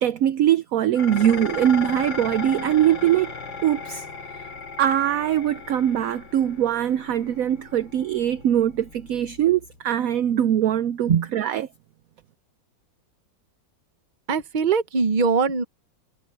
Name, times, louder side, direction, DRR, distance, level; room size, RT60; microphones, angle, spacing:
voice 1, 0.0-3.3 3.6-4.1 4.8-11.6, right 11 dB, 70° right, 0.8 m, -22 dB
Dishes pots and pans, 1.0-9.8, left 4 dB, 85° left, 3.2 m, -37 dB
voice 2, 14.3-15.6, right 5 dB, 35° right, 0.9 m, -21 dB
omnidirectional pair, 2.0 m